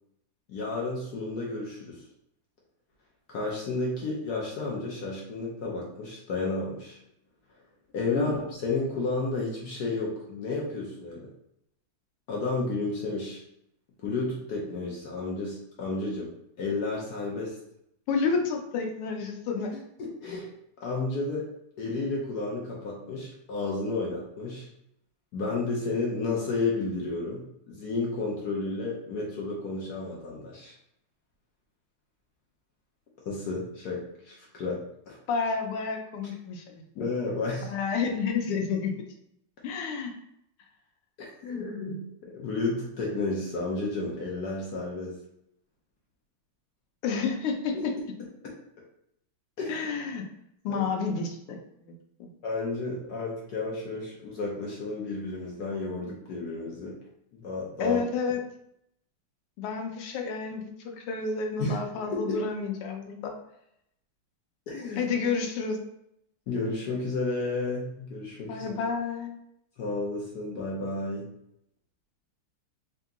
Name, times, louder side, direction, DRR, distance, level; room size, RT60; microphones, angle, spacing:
voice 1, 0.5-2.0 3.3-7.0 7.9-11.3 12.3-13.4 14.0-16.3 16.6-17.6 20.0-20.5 20.8-21.5 21.8-24.7 25.3-30.7 33.3-35.2 36.9-37.7 41.2-45.2 47.7-47.9 49.6-49.7 50.7-50.9 52.4-57.0 57.3-58.0 61.6-61.8 62.1-62.4 64.7-65.0 66.5-68.7 69.8-71.3, left 3 dB, 60° left, -3 dB, 1.1 m, -32 dB
voice 2, 18.1-19.8 35.3-36.6 37.7-38.9 39.6-40.1 47.0-48.0 49.7-50.2 50.6-51.6 51.9-52.3 57.8-58.4 59.6-63.3 65.0-65.8 68.5-69.4, left 5 dB, 85° left, 3 dB, 1.6 m, -30 dB
3.8 x 2.7 x 3.5 m, 0.76 s
omnidirectional pair, 2.4 m